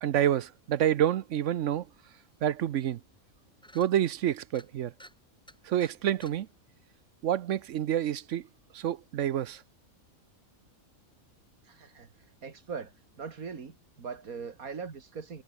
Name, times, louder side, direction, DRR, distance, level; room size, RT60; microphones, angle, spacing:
voice 1, 0.0-1.9 2.4-3.0 3.7-4.9 5.6-6.5 7.2-8.4 8.7-9.6, right 11 dB, 65° right, 1.0 m, -28 dB
sound 1, 2.3-2.4 2.7-2.8 3.1-3.3 3.6-3.9 4.5-4.7 5.0-5.2 5.5-5.9 6.2-6.3, equal, 5° left, 5.3 m, -52 dB
voice 2, 11.7-12.1 12.4-12.9 13.2-15.4, right 5 dB, 85° right, 2.5 m, -40 dB
omnidirectional pair, 1.5 m